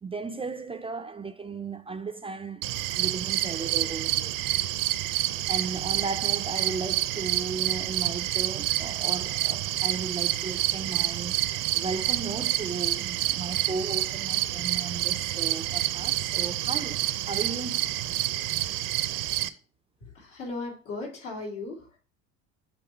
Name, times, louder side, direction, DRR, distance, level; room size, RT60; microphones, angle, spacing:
voice 1, 0.0-4.3 5.5-18.0, right 4 dB, 15° right, 0.4 m, -35 dB
sound 1, 2.6-19.5, right 15 dB, 60° right, 0.6 m, -28 dB
voice 2, 20.0-22.0, left 3 dB, 80° left, 2.9 m, -37 dB
7.7 x 3.3 x 4.3 m
hypercardioid pair, 75°, 37 cm